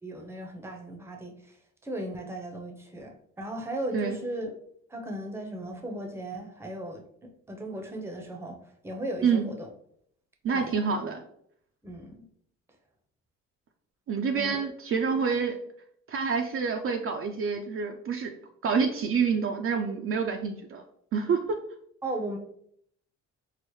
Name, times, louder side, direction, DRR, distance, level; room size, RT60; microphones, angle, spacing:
voice 1, 0.0-1.6 1.8-4.6 4.9-7.0 7.5-8.6 8.8-9.7 10.5-10.7 11.8-12.2 14.3-14.6 22.0-22.4, right 1 dB, 10° right, 2 dB, 0.6 m, -36 dB
voice 2, 10.4-11.2 14.1-15.6 16.1-18.3 18.6-20.8 21.1-21.6, right 5 dB, 45° right, 4 dB, 0.4 m, -27 dB
4.7 x 2.0 x 3.0 m, 0.68 s
cardioid pair, 90°, 30 cm